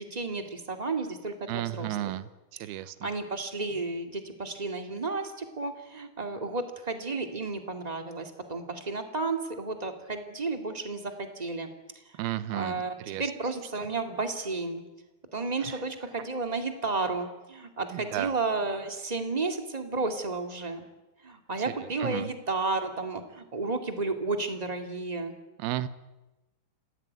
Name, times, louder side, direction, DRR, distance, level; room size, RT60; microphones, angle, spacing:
voice 1, 0.0-2.1 2.7-11.7 12.1-12.3 12.5-14.8 15.3-20.9 21.2-25.3, right 3 dB, 25° right, 5 dB, 0.9 m, -32 dB
voice 2, 1.5-3.1 12.2-13.2 15.7-15.8 17.9-18.3 21.8-22.3 25.6-25.9, right 13 dB, 75° right, 14 dB, 2.8 m, -33 dB
27.5 x 18.5 x 9.5 m, 1.0 s
omnidirectional pair, 4.9 m